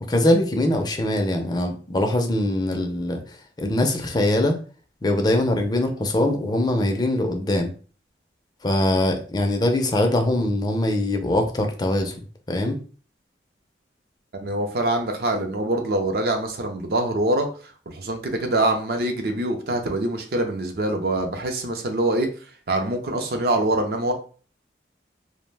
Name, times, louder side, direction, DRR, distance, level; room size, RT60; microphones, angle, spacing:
voice 1, 0.0-3.2 3.6-4.6 5.0-7.7 8.6-12.2 12.5-12.8, left 1 dB, 25° left, 4 dB, 0.4 m, -22 dB
voice 2, 14.4-22.3 22.7-24.1, right 1 dB, 60° right, 4 dB, 0.5 m, -24 dB
2.4 x 2.1 x 3.2 m, 0.40 s
head